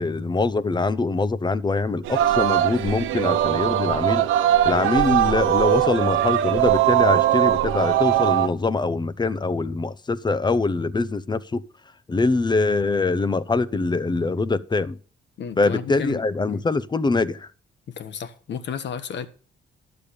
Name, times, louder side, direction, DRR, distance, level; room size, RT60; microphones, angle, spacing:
voice 1, 0.0-4.3 4.6-11.6 12.1-15.0 15.6-17.5, left 3 dB, 20° left, 0.7 m, -23 dB
Singing, 2.0-8.5, right 12 dB, 90° right, 0.9 m, -20 dB
voice 2, 15.4-16.2 16.5-16.6 17.9-19.3, left 7 dB, 65° left, 1.4 m, -32 dB
11.5 x 6.9 x 6.8 m
cardioid pair, 90°, 20 cm